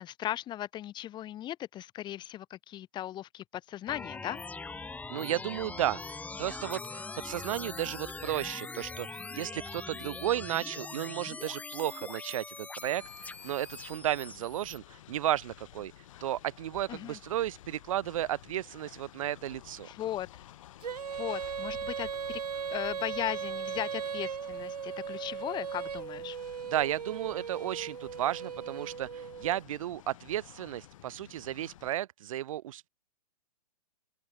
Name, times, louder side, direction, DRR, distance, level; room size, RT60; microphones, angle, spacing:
voice 1, 0.0-4.4 16.9-17.2 19.8-20.4 21.1-22.4 22.7-26.4, left 12 dB, 20° left, 3.4 m, -37 dB
sound 1, 3.9-14.8, left 3 dB, 5° left, 5.3 m, -42 dB
voice 2, 5.1-15.9 16.2-19.9 26.7-32.9, right 12 dB, 60° right, 2.0 m, -34 dB
Train, 12.8-31.9, left 13 dB, 55° left, 5.2 m, -53 dB
Female singing, 20.8-29.6, right 7 dB, 85° right, 3.7 m, -37 dB
open air
hypercardioid pair, 140°, 20 cm